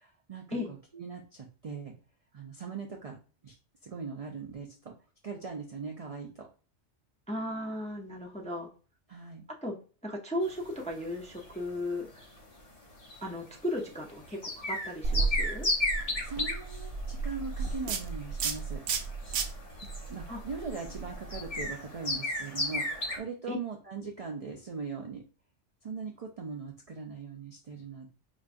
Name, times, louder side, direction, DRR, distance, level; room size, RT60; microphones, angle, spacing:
voice 1, 0.0-1.9 2.3-3.2 3.4-3.5 3.8-4.9 5.2-6.5 9.1-9.4 16.0-18.8 20.1-25.2 25.8-28.1, right 5 dB, 60° right, 2 dB, 0.4 m, -40 dB
voice 2, 7.3-8.7 9.6-9.8 10.0-12.2 13.2-15.7 20.3-20.4 23.5-23.6, left 1 dB, 10° left, -1 dB, 0.4 m, -36 dB
sound 1, 10.4-23.2, left 2 dB, 35° left, 0.8 m, -36 dB
sound 2, 15.0-21.7, right 4 dB, 75° right, 0.9 m, -34 dB
5.0 x 2.2 x 2.5 m, 0.36 s
omnidirectional pair, 1.3 m